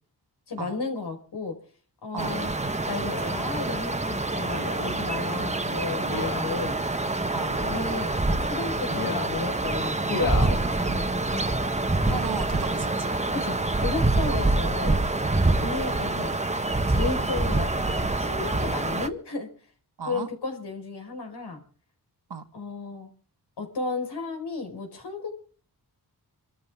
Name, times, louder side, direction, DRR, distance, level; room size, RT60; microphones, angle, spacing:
voice 1, 0.5-1.6 2.0-2.5 2.9-6.8 7.6-11.4 13.3-15.0 15.6-16.4 16.9-19.5 20.0-21.6 22.5-23.1 23.6-25.5, left 4 dB, 85° left, 4.9 m, -33 dB
sound 1, 2.2-19.1, right 2 dB, 15° right, 1.2 m, -26 dB
Male speech man speaking, 3.0-3.3 4.5-4.9 6.0-6.5 7.4-7.9 8.9-9.3 10.1-10.5 11.2-11.3, left 4 dB, 55° left, 2.8 m, -33 dB
voice 2, 12.1-13.2 14.3-14.4 15.6-15.7 20.0-20.3 22.3-22.4, right 5 dB, 80° right, 1.9 m, -35 dB
26.5 x 13.5 x 3.6 m
wide cardioid pair, 90°, 39 cm